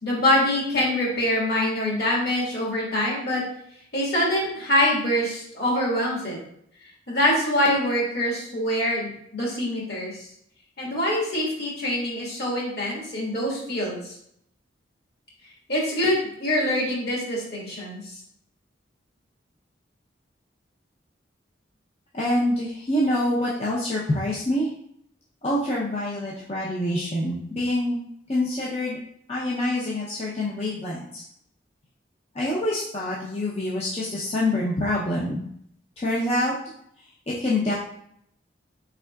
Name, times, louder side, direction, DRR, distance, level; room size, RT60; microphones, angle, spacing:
voice 1, 0.0-3.4 3.9-6.4 7.1-10.2 10.8-14.1 15.7-18.1, left 1 dB, 60° left, -4 dB, 1.6 m, -24 dB
voice 2, 22.1-24.7 25.4-28.0 28.3-29.0 29.3-31.2 32.3-35.4 36.0-36.5 37.3-37.7, left 1 dB, 35° left, -6 dB, 0.5 m, -26 dB
4.5 x 3.5 x 2.3 m, 0.70 s
head